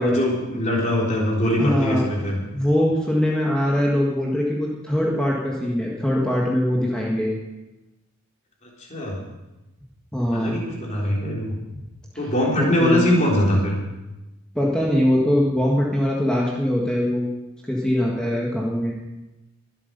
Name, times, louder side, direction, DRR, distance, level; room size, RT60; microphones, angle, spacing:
voice 1, 0.0-2.4 8.6-9.2 10.3-11.6 12.2-13.8, left 1 dB, 30° left, -3 dB, 3.7 m, -22 dB
voice 2, 1.6-2.1 2.5-7.3 10.1-10.6 12.6-13.1 14.5-17.3 17.7-19.0, equal, 5° left, -3 dB, 1.6 m, -22 dB
23.0 x 8.2 x 5.3 m, 1.0 s
head